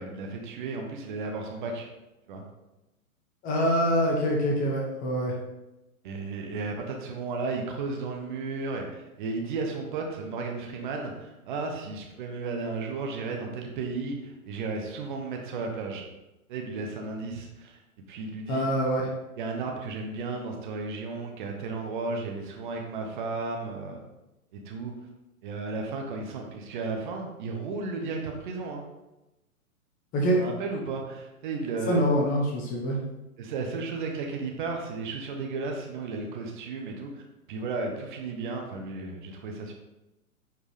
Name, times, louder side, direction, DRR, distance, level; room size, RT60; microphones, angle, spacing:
voice 1, 0.0-1.9 2.3-2.4 6.0-16.0 16.5-17.8 18.1-18.6 19.4-24.0 24.5-24.9 25.4-28.8 30.4-32.1 33.4-37.2 37.5-39.7, right 3 dB, 35° right, 2 dB, 1.2 m, -34 dB
voice 2, 3.4-5.3 18.5-19.1 30.1-30.4 31.8-33.0, equal, 20° left, 0 dB, 1.1 m, -25 dB
9.6 x 5.1 x 3.3 m, 0.98 s
figure-of-eight pair, 115°, 43 cm